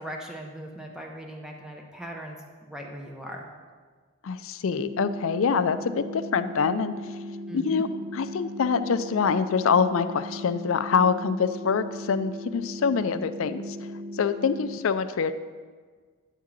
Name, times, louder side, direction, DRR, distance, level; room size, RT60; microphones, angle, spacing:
voice 1, 0.0-3.5 7.5-7.9, equal, 5° right, 0 dB, 0.8 m, -39 dB
voice 2, 4.2-6.9 7.5-15.3, left 6 dB, 70° left, 11 dB, 0.4 m, -25 dB
sound 1, 4.8-14.8, equal, 50° right, 0.6 m, -38 dB
10.0 x 3.7 x 7.3 m, 1.5 s
head